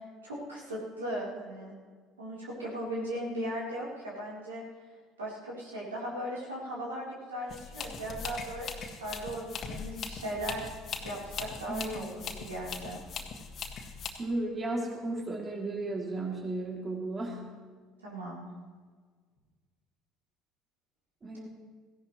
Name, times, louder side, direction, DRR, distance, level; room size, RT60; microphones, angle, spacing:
voice 1, 0.2-1.7 2.2-4.6 5.2-10.6 11.0-13.0 18.0-18.5, right 1 dB, 85° right, -6 dB, 3.6 m, -37 dB
sound 1, 7.5-14.1, left 6 dB, 45° left, 1.7 m, -40 dB
voice 2, 14.2-17.4 21.2-21.5, right 2 dB, 30° right, -1 dB, 2.8 m, -34 dB
17.0 x 15.5 x 3.2 m, 1.5 s
hypercardioid pair, 60°, 0 cm